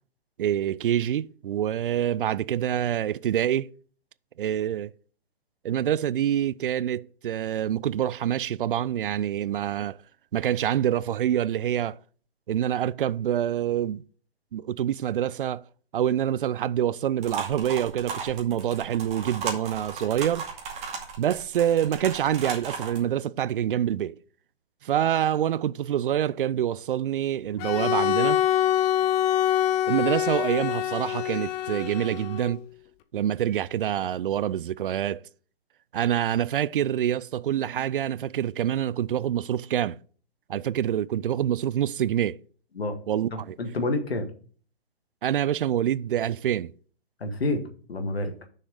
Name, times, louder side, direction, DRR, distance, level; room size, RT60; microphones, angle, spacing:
voice 1, 0.4-3.7 4.4-4.9 5.6-10.0 10.3-12.0 12.5-14.0 14.5-15.6 15.9-20.5 21.2-24.2 24.8-28.4 29.9-32.6 33.1-35.2 35.9-40.0 40.5-42.4 43.1-43.6 45.2-46.7, right 10 dB, 60° right, 0.4 m, -26 dB
sound 1, 17.2-23.0, right 5 dB, 20° right, 2.2 m, -35 dB
Bowed string instrument, 27.6-32.6, left 11 dB, 20° left, 0.6 m, -25 dB
voice 2, 43.3-44.3 47.2-48.3, left 2 dB, 75° left, 1.8 m, -29 dB
6.5 x 6.4 x 5.2 m
figure-of-eight pair, 125°, 31 cm